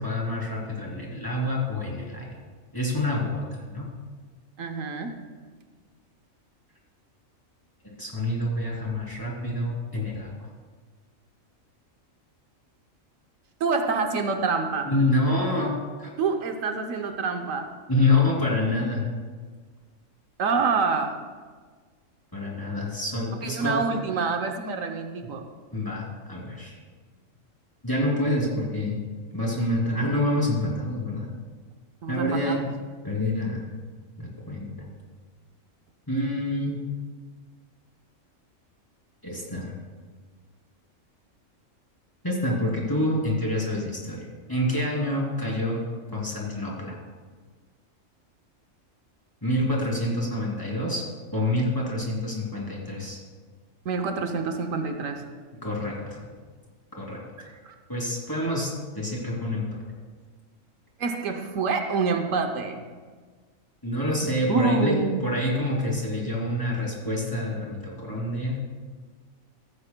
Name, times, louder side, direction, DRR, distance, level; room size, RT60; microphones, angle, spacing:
voice 1, 0.0-2.3 2.7-3.9 8.0-10.3 14.8-16.1 17.9-19.0 22.3-23.8 25.7-26.7 27.8-29.0 29.3-31.3 32.1-32.7 33.0-33.7 34.2-34.7 36.1-36.9 39.2-39.7 42.2-45.8 46.1-46.9 49.4-51.0 51.3-53.2 55.6-56.3 57.0-57.2 57.9-59.6 63.8-68.6, left 1 dB, 15° left, -4 dB, 2.7 m, -27 dB
voice 2, 4.6-5.2 13.6-14.9 16.2-17.7 20.4-21.1 23.4-25.5 32.0-32.6 53.8-55.3 57.6-57.7 61.0-62.8 64.5-65.2, right 4 dB, 75° right, 5 dB, 1.2 m, -26 dB
15.0 x 14.5 x 2.2 m, 1.5 s
omnidirectional pair, 1.4 m